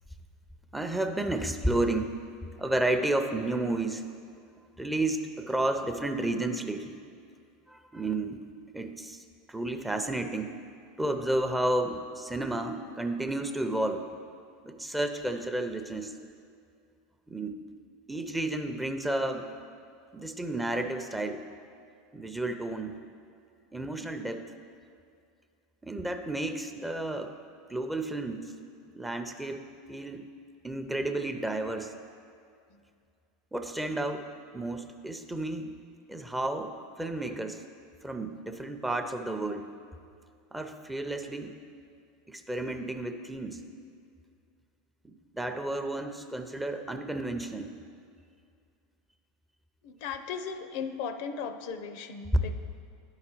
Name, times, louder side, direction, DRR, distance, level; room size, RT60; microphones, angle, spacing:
voice 1, 0.7-2.1 2.6-4.0 4.8-7.0 7.7-8.4 8.7-10.6 11.0-14.2 14.6-16.1 17.3-17.6 18.1-19.5 20.1-21.5 22.1-23.0 23.7-24.5 25.8-27.3 27.7-28.5 28.9-29.6 29.9-30.2 30.6-31.9 33.5-34.3 34.5-35.7 36.1-37.6 38.0-39.7 40.5-41.6 42.3-43.7 45.0-47.7 52.3-52.4, right 1 dB, 5° right, 6 dB, 0.6 m, -31 dB
voice 2, 49.8-52.5, left 6 dB, 65° left, 9 dB, 0.5 m, -37 dB
11.0 x 4.8 x 4.5 m, 2.3 s
hypercardioid pair, 100°, 0 cm